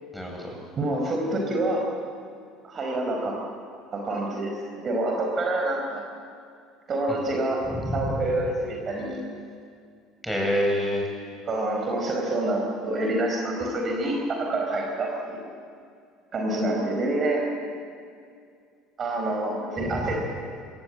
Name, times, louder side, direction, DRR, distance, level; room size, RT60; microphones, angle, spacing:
voice 1, 0.1-0.5 7.1-7.2 7.7-8.2 10.2-11.1 19.9-20.1, equal, 5° right, 0 dB, 7.8 m, -27 dB
voice 2, 0.8-1.9 2.6-3.4 3.9-6.0 6.9-7.6 7.9-9.2 11.5-15.4 16.3-17.4 19.0-20.4, right 1 dB, 35° right, 0 dB, 4.5 m, -27 dB
26.5 x 17.5 x 8.8 m, 2.3 s
figure-of-eight pair, 65°, 0 cm